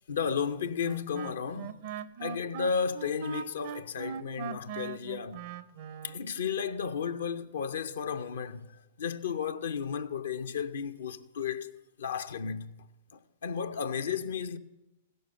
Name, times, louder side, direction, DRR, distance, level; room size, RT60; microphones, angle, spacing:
voice 1, 0.1-1.8 2.2-5.4 6.0-8.7 9.0-12.7 13.4-14.6, left 6 dB, 70° left, 0.6 m, -33 dB
Wind instrument woodwind instrument, 0.8-6.2, right 8 dB, 50° right, 0.5 m, -40 dB
16.0 x 6.6 x 6.6 m
figure-of-eight pair, 105°, 0 cm